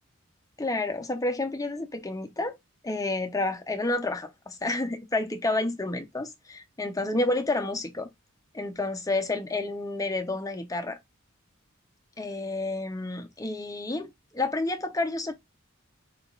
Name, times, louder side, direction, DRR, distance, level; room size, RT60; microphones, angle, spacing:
voice 1, 0.6-2.6 2.8-8.1 8.5-11.0 12.2-15.3, left 2 dB, 15° left, 0.7 m, -30 dB
4.8 x 3.4 x 2.4 m
head